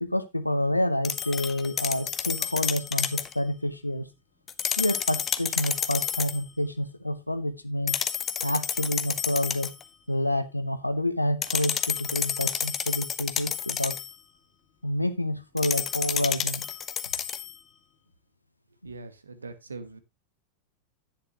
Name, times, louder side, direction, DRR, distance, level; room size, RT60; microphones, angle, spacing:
voice 1, 0.0-4.1 4.8-8.0 8.4-9.7 10.1-14.0 14.8-16.6, left 1 dB, 85° left, 11 dB, 1.0 m, -28 dB
sound 1, 1.0-3.3 4.5-6.4 7.9-9.8 11.4-14.1 15.6-17.5, left 8 dB, 25° left, 0.8 m, -30 dB
voice 2, 18.8-20.0, right 3 dB, 75° right, 12 dB, 1.2 m, -41 dB
10.5 x 8.8 x 2.9 m, 0.23 s
figure-of-eight pair, 90°, 0 cm